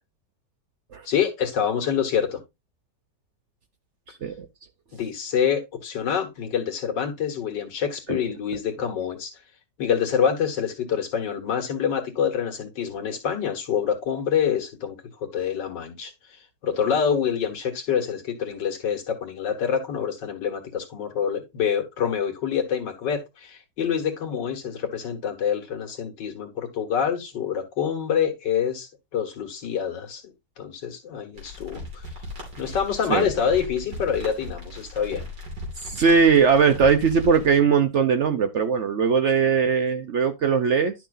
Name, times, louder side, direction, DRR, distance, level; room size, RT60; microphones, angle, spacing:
voice 1, 1.1-2.4 4.9-9.3 9.8-15.0 15.3-32.0 32.5-35.3, left 8 dB, 85° left, 2.2 m, -26 dB
voice 2, 4.1-4.5 8.1-8.2 33.1-33.3 35.8-40.9, right 6 dB, 60° right, 0.7 m, -20 dB
sound 1, 31.4-37.6, left 1 dB, 90° right, 3.9 m, -38 dB
11.0 x 6.0 x 2.5 m
omnidirectional pair, 1.9 m